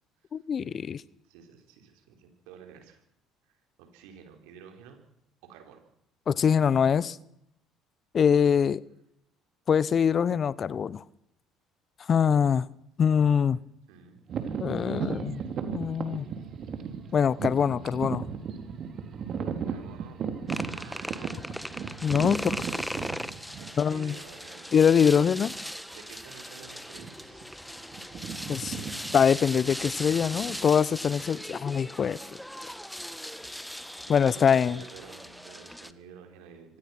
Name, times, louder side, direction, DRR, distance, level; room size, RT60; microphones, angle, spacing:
voice 1, 0.3-1.0 6.3-7.2 8.1-8.8 9.7-11.0 12.1-12.7 13.0-13.6 14.6-15.4 15.7-16.3 17.1-18.2 22.0-22.5 23.8-24.1 24.7-25.5 28.5-28.8 29.1-32.2 34.1-34.8, left 7 dB, 45° left, 21 dB, 0.9 m, -23 dB
voice 2, 1.2-3.0 3.5-5.0 5.4-5.8 13.2-15.6 19.7-21.6 23.6-24.7 25.2-25.5 25.9-27.5 34.1-36.8, right 7 dB, 75° right, 4 dB, 4.9 m, -51 dB
sound 1, 14.3-24.1 24.7-24.8 25.5-25.7 26.0-26.2 26.9-27.4 27.7-31.1, right 6 dB, 50° right, 3.2 m, -36 dB
sound 2, 20.5-35.9, equal, ahead, 1.5 m, -39 dB
25.0 x 19.0 x 6.1 m, 0.79 s
hypercardioid pair, 60°, 0 cm